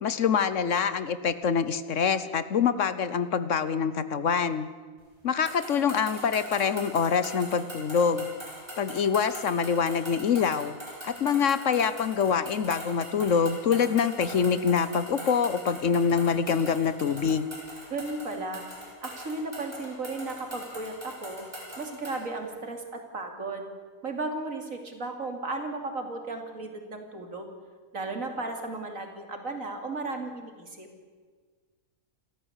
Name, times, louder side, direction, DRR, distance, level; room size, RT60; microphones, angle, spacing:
voice 1, 0.0-4.7 5.2-8.3 8.8-10.8 11.0-17.5, left 6 dB, 60° left, 13 dB, 1.2 m, -25 dB
sound 1, 5.5-22.2, equal, 20° right, 4.8 m, -42 dB
voice 2, 17.9-18.6 19.0-21.4 21.8-23.6 24.0-27.5 27.9-30.9, right 3 dB, 65° right, 4 dB, 3.2 m, -35 dB
28.0 x 14.0 x 8.1 m, 1.6 s
omnidirectional pair, 1.5 m